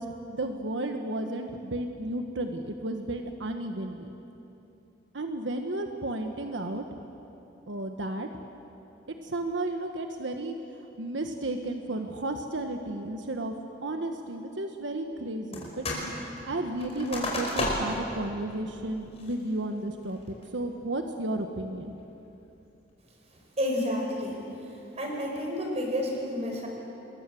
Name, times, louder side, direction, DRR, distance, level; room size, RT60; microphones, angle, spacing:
voice 1, 0.0-4.1 5.1-6.8 7.7-8.3 9.1-13.5 13.8-15.9 16.4-21.9, right 1 dB, 85° right, 5 dB, 1.4 m, -33 dB
sound 1, 15.5-16.1 16.4-18.1 18.5-18.6 19.1-19.5 20.0-20.4, left 1 dB, 35° left, 5.3 m, -32 dB
voice 2, 23.6-24.4 25.0-26.7, equal, 35° right, 1 dB, 5.1 m, -30 dB
28.0 x 21.5 x 7.8 m, 3.0 s
head